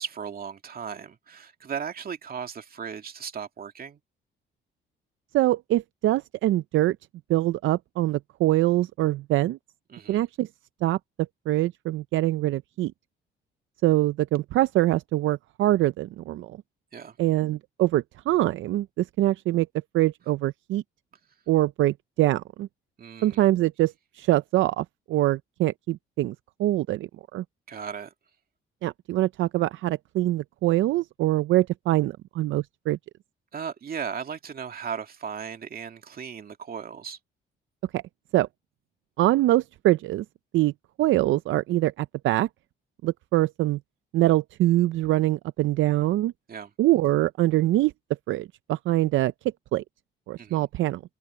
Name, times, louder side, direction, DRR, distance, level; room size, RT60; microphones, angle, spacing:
voice 1, 0.0-4.0 9.9-10.2 16.9-17.2 23.0-23.4 27.7-28.1 33.5-37.2 46.5-46.7 50.4-50.6, right 7 dB, 50° right, 2.4 m, -36 dB
voice 2, 5.3-7.0 7.3-9.6 10.1-10.5 10.8-11.0 11.5-12.9 13.8-16.6 17.2-19.7 19.9-20.8 21.5-22.7 23.2-26.3 26.6-27.4 28.8-33.0 37.9-38.0 38.3-38.5 39.2-40.2 40.5-40.7 41.0-42.5 43.0-43.8 44.1-46.3 46.8-47.9 48.3-49.3 49.7-49.8 50.3-51.0, right 15 dB, 80° right, 0.5 m, -24 dB
cardioid pair, 90°, 20 cm